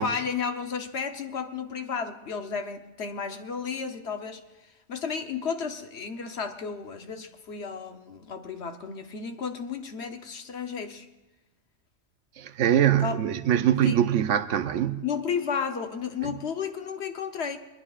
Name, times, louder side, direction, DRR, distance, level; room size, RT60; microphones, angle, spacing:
voice 1, 0.0-11.1 13.0-13.2 13.8-14.0 15.0-17.6, left 6 dB, 65° left, 1.1 m, -33 dB
voice 2, 12.4-15.0 16.2-16.3, right 10 dB, 80° right, 1.0 m, -23 dB
21.5 x 21.0 x 2.4 m
omnidirectional pair, 1.2 m